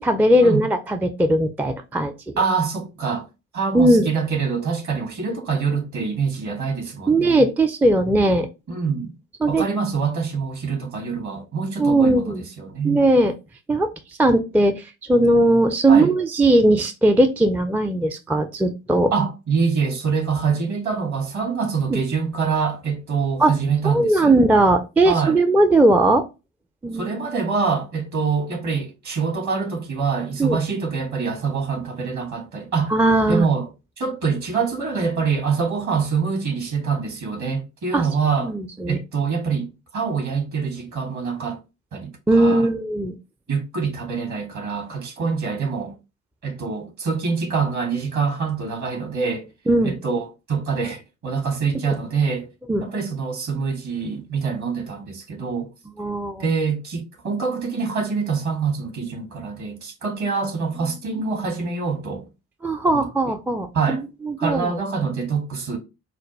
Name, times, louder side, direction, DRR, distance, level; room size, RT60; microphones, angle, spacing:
voice 1, 0.0-2.1 3.7-4.1 7.1-8.5 9.4-9.7 11.8-12.5 12.8-13.3 13.7-13.9 14.2-19.1 21.9-22.0 23.4-23.5 23.8-26.2 26.8-27.1 30.4-30.6 32.9-33.5 37.9-38.1 38.4-39.0 42.3-43.1 49.7-50.0 52.7-52.9 56.0-56.4 62.6-64.0 64.3-64.7, right 1 dB, 5° right, 0.3 m, -18 dB
voice 2, 2.4-3.3 3.5-7.4 8.7-9.1 9.5-13.0 15.9-16.1 19.1-24.4 25.0-25.4 26.9-32.9 33.3-33.7 34.0-38.5 38.9-41.6 41.9-42.7 43.5-45.9 46.4-49.5 49.8-52.5 52.8-55.7 56.4-62.2 62.9-63.1 63.7-64.0 64.4-65.8, right 5 dB, 50° right, 1.5 m, -25 dB
4.3 x 2.2 x 3.0 m
figure-of-eight pair, 40°, 38 cm